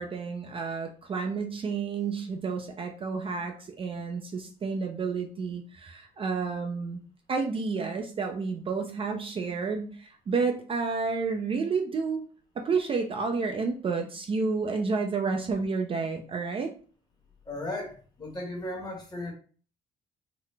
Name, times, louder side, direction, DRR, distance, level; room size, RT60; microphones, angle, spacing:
voice 1, 0.0-7.0 7.3-12.2 12.6-16.7, right 4 dB, 35° right, 3 dB, 0.5 m, -30 dB
voice 2, 17.5-19.3, left 1 dB, 25° left, 0 dB, 1.3 m, -36 dB
3.9 x 2.1 x 3.2 m, 0.40 s
cardioid pair, 110°, 17 cm